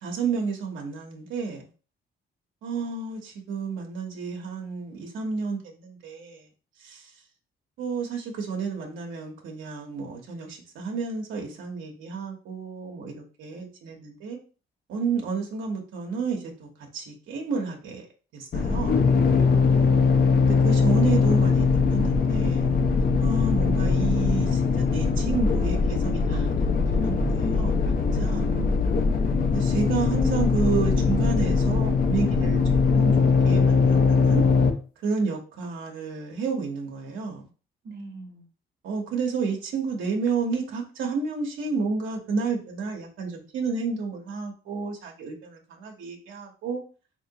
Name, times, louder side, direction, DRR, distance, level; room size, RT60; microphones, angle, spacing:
voice 1, 0.0-1.6 2.6-6.5 6.8-7.1 7.8-14.4 14.9-18.1 18.3-19.0 20.4-22.7 23.2-28.5 29.5-32.6 32.9-33.1 33.4-34.4 35.0-37.4 38.8-46.8, right 5 dB, 80° right, 0 dB, 0.9 m, -31 dB
sound 1, 18.5-34.7, left 5 dB, 45° left, 0.6 m, -21 dB
voice 2, 19.4-20.3 28.3-29.0 37.8-38.5, right 2 dB, 55° right, 2 dB, 1.0 m, -40 dB
3.7 x 2.9 x 2.8 m, 0.37 s
cardioid pair, 90°, 20 cm